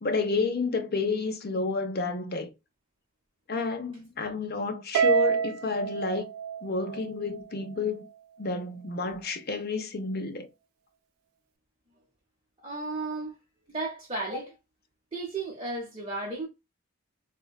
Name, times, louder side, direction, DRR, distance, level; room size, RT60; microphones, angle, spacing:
voice 1, 0.0-2.5 3.5-6.3 6.6-8.1 8.4-10.5, left 3 dB, 45° left, 0.5 m, -30 dB
Harp, 4.9-7.4, right 6 dB, 75° right, 0.3 m, -27 dB
voice 2, 12.6-13.3 13.7-14.5 15.1-16.5, right 2 dB, 25° right, 0.7 m, -34 dB
3.6 x 2.1 x 2.3 m
head